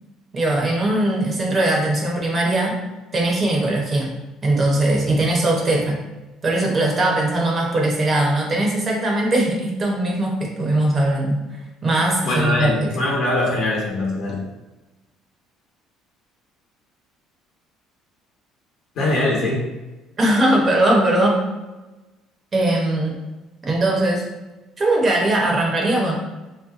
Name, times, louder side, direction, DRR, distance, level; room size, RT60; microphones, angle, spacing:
voice 1, 0.3-2.7 3.1-4.1 4.4-6.0 6.4-11.4 11.8-13.0 20.2-21.4 22.5-23.2 23.6-24.2 24.8-26.2, right 1 dB, 25° right, -1 dB, 0.6 m, -20 dB
voice 2, 12.2-14.5 18.9-19.7, left 2 dB, 50° left, -3 dB, 1.0 m, -22 dB
3.4 x 2.6 x 2.4 m, 1.1 s
cardioid pair, 165°, 0 cm